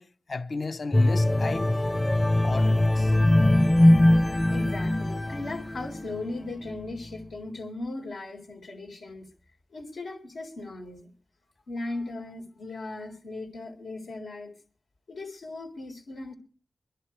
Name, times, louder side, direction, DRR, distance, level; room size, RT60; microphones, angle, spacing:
voice 1, 0.0-1.8 2.4-3.2, left 3 dB, 60° left, 0.8 m, -34 dB
sound 1, 0.9-6.2 6.7-6.9, left 1 dB, 25° left, 0.7 m, -21 dB
voice 2, 4.5-9.3 9.7-11.1 11.7-14.5 15.1-16.3, left 2 dB, 90° left, 3.8 m, -38 dB
24.0 x 11.0 x 4.6 m
cardioid pair, 50°, 0 cm